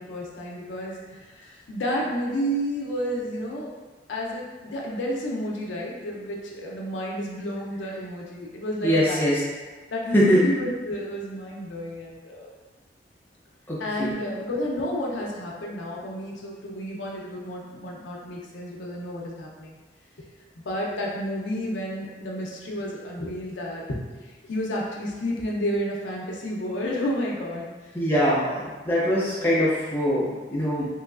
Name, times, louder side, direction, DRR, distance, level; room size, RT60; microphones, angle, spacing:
voice 1, 0.0-3.7 4.1-9.3 9.9-12.5 13.8-19.7 20.6-27.9 29.0-29.7, equal, 90° left, -3 dB, 0.5 m, -31 dB
voice 2, 8.8-9.4 10.1-10.4 13.7-14.1 27.9-30.9, equal, 10° left, -8 dB, 0.7 m, -22 dB
3.0 x 3.0 x 2.4 m, 1.3 s
head